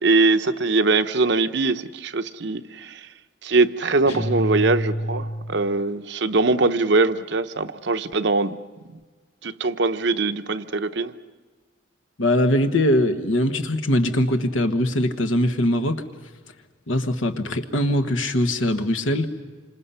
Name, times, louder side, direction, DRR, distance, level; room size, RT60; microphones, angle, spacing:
voice 1, 0.0-3.1 3.4-8.6 9.4-11.1, right 3 dB, 60° right, 10 dB, 0.8 m, -22 dB
sound 1, 4.1-5.8, equal, 30° left, 1.8 m, -28 dB
voice 2, 12.2-16.0 16.9-19.4, left 1 dB, 80° left, 7 dB, 1.4 m, -21 dB
27.5 x 26.5 x 5.7 m, 1.3 s
head